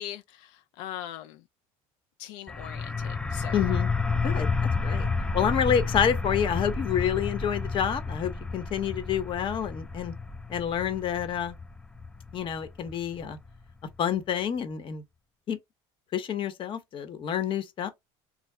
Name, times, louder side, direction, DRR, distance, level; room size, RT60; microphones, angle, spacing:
voice 1, 0.0-1.4 2.2-3.7, left 12 dB, 80° left, 0.4 m, -41 dB
sound 1, 2.5-13.9, left 4 dB, 5° left, 0.3 m, -31 dB
voice 2, 3.5-3.9 4.2-4.5 4.8-5.1 5.3-10.1 10.5-11.6 12.3-13.4 14.0-15.0 15.5-15.6 16.1-17.9, left 8 dB, 40° left, 0.8 m, -28 dB
3.7 x 2.0 x 3.2 m
supercardioid pair, 110°, 13 cm